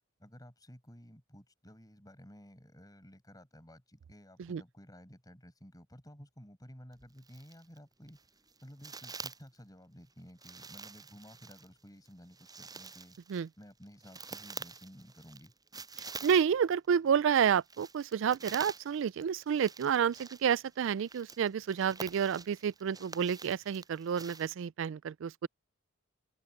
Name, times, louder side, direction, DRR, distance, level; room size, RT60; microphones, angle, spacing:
voice 1, 0.2-8.2 8.6-13.2 13.6-15.5, equal, 20° left, 6.8 m, -54 dB
sound 1, 6.9-7.8 8.1-9.6 10.4-16.7 17.1-24.5, right 4 dB, 20° right, 7.8 m, -47 dB
voice 2, 16.2-25.5, right 7 dB, 70° right, 0.3 m, -30 dB
open air
head